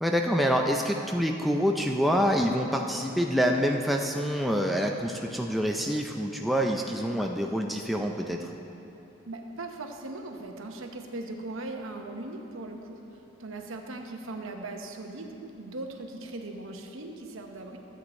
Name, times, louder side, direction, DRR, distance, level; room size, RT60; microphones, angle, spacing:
voice 1, 0.0-8.5, equal, ahead, 1 dB, 0.4 m, -26 dB
voice 2, 9.3-13.0 13.4-17.8, right 2 dB, 80° right, 3 dB, 0.9 m, -39 dB
13.0 x 8.2 x 4.3 m, 2.9 s
head